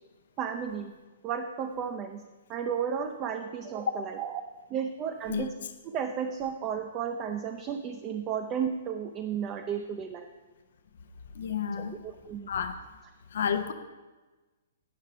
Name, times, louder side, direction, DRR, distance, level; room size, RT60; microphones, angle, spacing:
voice 1, 0.4-0.9 1.2-2.2 2.5-4.4 4.7-5.5 5.9-10.2 12.0-12.5, right 7 dB, 30° right, 5 dB, 0.6 m, -33 dB
voice 2, 11.3-11.9 12.5-12.7 13.3-13.7, left 7 dB, 65° left, 8 dB, 0.7 m, -30 dB
9.3 x 5.6 x 4.9 m, 1.2 s
hypercardioid pair, 120°, 0 cm